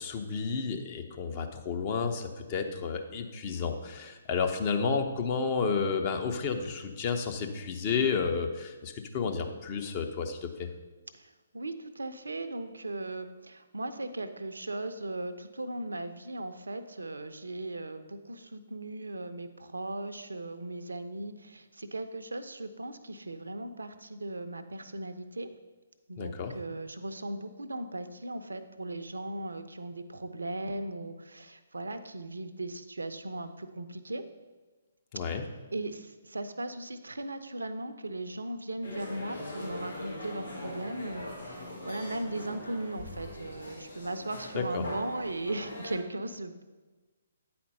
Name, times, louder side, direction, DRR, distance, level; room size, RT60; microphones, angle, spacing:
voice 1, 0.0-10.7 26.2-26.6 35.1-35.4 44.5-44.8, left 5 dB, 35° left, 5 dB, 0.8 m, -31 dB
voice 2, 11.1-25.5 26.1-34.2 35.7-46.6, right 2 dB, 80° right, 9 dB, 0.5 m, -38 dB
sound 1, 38.8-46.0, left 1 dB, 85° left, 2.4 m, -41 dB
9.0 x 4.3 x 5.4 m, 1.3 s
figure-of-eight pair, 135°, 0 cm